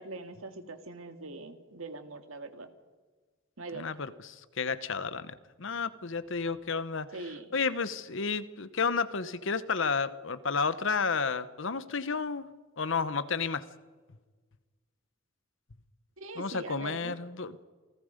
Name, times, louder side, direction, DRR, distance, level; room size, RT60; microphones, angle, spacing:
voice 1, 0.0-2.7 3.6-3.8 7.1-7.5 16.2-17.1, right 2 dB, 80° right, 7 dB, 2.1 m, -42 dB
voice 2, 3.7-7.1 7.5-13.7 16.4-17.6, left 5 dB, 65° left, 14 dB, 1.0 m, -32 dB
28.5 x 19.0 x 5.2 m, 1.4 s
head